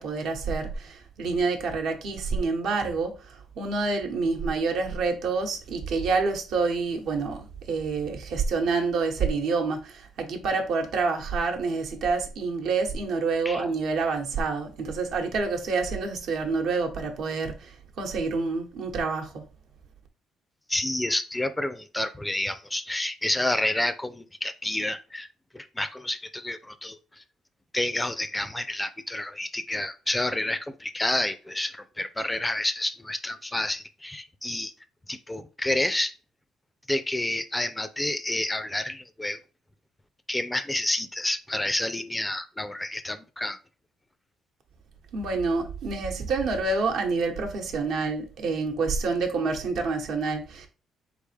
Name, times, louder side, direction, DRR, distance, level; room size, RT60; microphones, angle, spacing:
voice 1, 0.0-19.4 45.1-50.7, right 4 dB, 75° right, 1.0 m, -28 dB
voice 2, 20.7-25.3 25.5-27.2 27.7-34.7 35.1-36.2 36.9-39.4 40.3-43.6, left 1 dB, 10° left, 0.4 m, -29 dB
4.0 x 3.5 x 3.3 m
cardioid pair, 110°, 0 cm